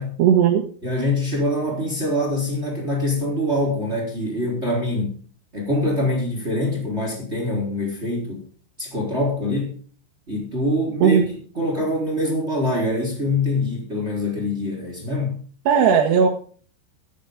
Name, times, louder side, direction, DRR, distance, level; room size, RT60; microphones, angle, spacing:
voice 1, 0.2-0.6 11.0-11.2 15.7-16.3, right 7 dB, 75° right, 0 dB, 3.5 m, -16 dB
voice 2, 0.8-5.2 5.5-8.4 8.8-9.7 10.3-11.2 11.6-15.4, left 1 dB, 15° right, 0 dB, 4.2 m, -24 dB
14.0 x 12.5 x 3.7 m, 0.43 s
omnidirectional pair, 5.0 m